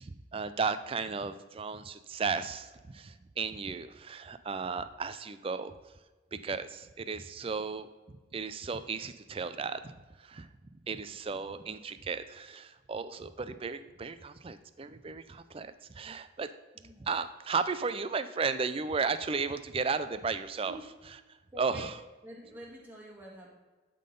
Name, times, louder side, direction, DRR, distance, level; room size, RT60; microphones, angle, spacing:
voice 1, 0.0-5.7 6.3-9.9 10.2-10.5 10.9-16.5 17.0-20.8 21.6-21.9, right 5 dB, 30° right, 12 dB, 0.4 m, -34 dB
voice 2, 16.7-17.1 20.6-20.9 21.5-21.9 22.2-23.5, right 1 dB, 10° right, -3 dB, 1.8 m, -47 dB
11.5 x 3.8 x 5.3 m, 1.3 s
head